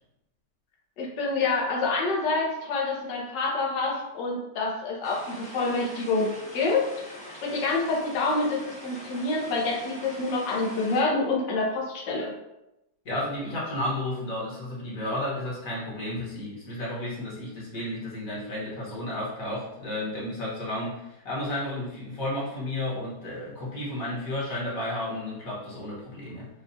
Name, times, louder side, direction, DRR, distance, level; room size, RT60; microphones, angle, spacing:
voice 1, 1.0-6.8 7.4-12.3, left 3 dB, 70° left, -2 dB, 1.6 m, -27 dB
sound 1, 5.0-11.0, left 1 dB, 5° left, 0.6 m, -43 dB
voice 2, 13.0-26.5, left 1 dB, 50° left, -6 dB, 1.7 m, -32 dB
7.2 x 2.4 x 2.7 m, 0.90 s
omnidirectional pair, 2.0 m